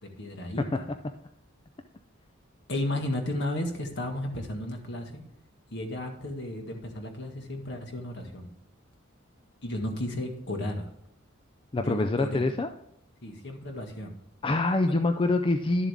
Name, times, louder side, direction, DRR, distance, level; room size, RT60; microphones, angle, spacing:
voice 1, 0.0-0.7 2.7-5.2 5.7-8.5 9.6-10.9 11.8-12.5 13.2-14.1, left 1 dB, 55° left, 3 dB, 1.7 m, -34 dB
voice 2, 11.7-12.7 14.4-15.9, left 2 dB, 25° left, 7 dB, 0.4 m, -25 dB
11.5 x 7.3 x 3.6 m, 0.79 s
head